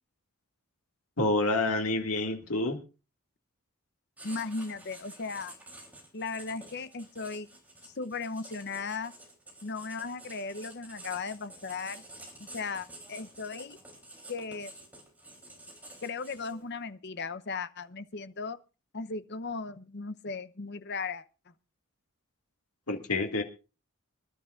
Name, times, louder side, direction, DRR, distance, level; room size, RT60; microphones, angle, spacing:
voice 1, 1.2-2.8 22.9-23.4, left 2 dB, 80° left, 2.2 m, -28 dB
voice 2, 4.2-5.5 6.1-7.5 7.8-9.1 9.6-12.0 12.4-13.8 14.3-14.7 16.0-18.6 18.9-21.2, left 4 dB, 50° left, 0.8 m, -37 dB
Writing, 4.2-16.8, right 1 dB, 5° right, 3.4 m, -50 dB
26.0 x 11.5 x 2.5 m
head